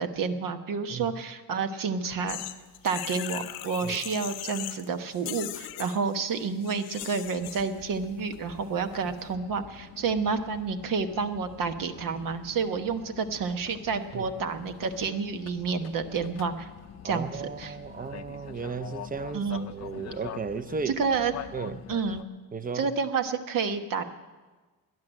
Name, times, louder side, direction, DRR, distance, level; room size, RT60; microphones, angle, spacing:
voice 1, 0.0-2.4 2.8-16.7 17.0-17.8 19.3-19.7 20.9-21.3 21.7-22.2 22.7-24.0, right 5 dB, 65° right, 1.2 m, -30 dB
sound 1, 2.3-4.9 5.1-7.7, left 13 dB, 90° left, 0.9 m, -39 dB
sound 2, 7.4-22.2, left 10 dB, 45° left, 0.6 m, -45 dB
voice 2, 17.0-21.0 21.5-21.8 22.5-22.9, right 5 dB, 25° right, 0.7 m, -35 dB
12.5 x 10.5 x 9.0 m
cardioid pair, 95°, 35 cm